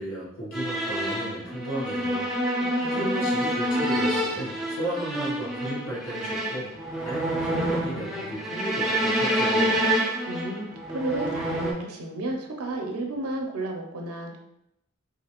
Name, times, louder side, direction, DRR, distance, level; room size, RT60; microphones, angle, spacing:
voice 1, 0.0-2.3 2.9-6.7 7.0-10.0, right 1 dB, 65° left, -5 dB, 1.0 m, -34 dB
sound 1, 0.5-11.7, equal, ahead, 0.4 m, -27 dB
voice 2, 2.5-3.1 10.2-14.4, right 2 dB, 85° right, 2 dB, 0.5 m, -32 dB
3.2 x 2.5 x 2.8 m, 0.82 s
head